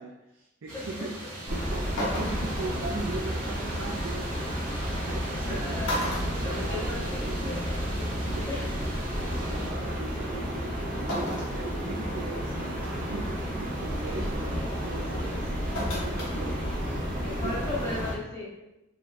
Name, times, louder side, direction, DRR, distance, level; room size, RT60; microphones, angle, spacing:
voice 1, 0.0-6.0 6.3-7.5 8.3-8.6 9.2-17.0 17.4-17.7, right 3 dB, 65° right, -1 dB, 0.5 m, -40 dB
sound 1, 0.7-9.7, right 1 dB, 90° right, 1.5 m, -42 dB
sound 2, 1.5-18.1, equal, 40° right, 1.0 m, -31 dB
sound 3, 2.0-2.6 4.2-4.3 5.3-5.5 5.8-7.2 7.6-7.7 8.9-9.0 11.1-11.6 12.1-12.2 12.8-13.1 15.7-16.4 16.7-16.8, left 1 dB, 60° left, 1.2 m, -33 dB
voice 2, 5.5-6.0 6.4-8.0 8.5-8.6 17.2-18.7, left 2 dB, 15° left, -9 dB, 1.5 m, -36 dB
4.0 x 2.9 x 2.5 m, 0.94 s
head